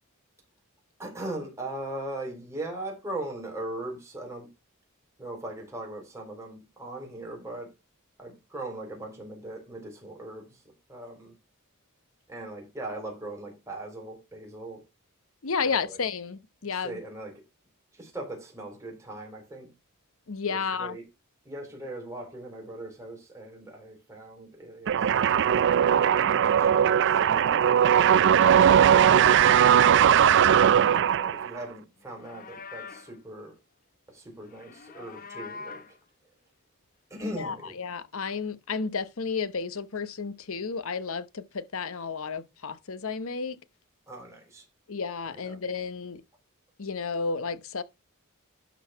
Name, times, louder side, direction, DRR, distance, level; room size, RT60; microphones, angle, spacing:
voice 1, 1.0-4.5 5.2-7.7 8.2-10.6 10.9-11.4 12.3-14.8 15.6-16.0 16.7-17.4 17.9-19.7 20.5-21.1 21.5-26.0 26.3-27.7 28.6-33.6 34.1-36.0 37.1-37.8 44.1-44.7 45.3-45.6, right 1 dB, 15° right, 3.9 m, -40 dB
voice 2, 15.4-17.0 20.3-21.0 37.4-43.6 44.9-46.2 46.8-47.8, left 5 dB, 65° left, 0.9 m, -32 dB
sound 1, 24.9-31.6, right 9 dB, 55° right, 0.4 m, -19 dB
Livestock farm animals working animals, 32.0-33.2 34.5-36.0, left 5 dB, 40° left, 0.8 m, -44 dB
12.0 x 4.0 x 5.7 m
head